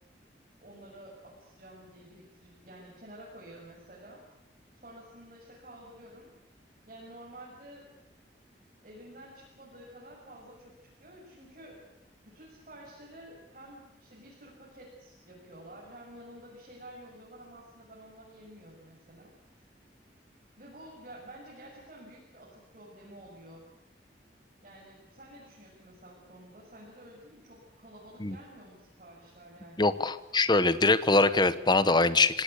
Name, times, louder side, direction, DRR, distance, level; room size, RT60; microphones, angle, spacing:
voice 1, 0.6-4.2 4.8-6.3 6.9-7.9 8.8-11.8 12.3-19.3 20.6-23.7 24.6-29.9, right 1 dB, 45° right, -4 dB, 6.9 m, -50 dB
voice 2, 29.8-32.4, left 3 dB, 25° left, 14 dB, 1.1 m, -23 dB
27.0 x 17.5 x 8.3 m, 0.92 s
head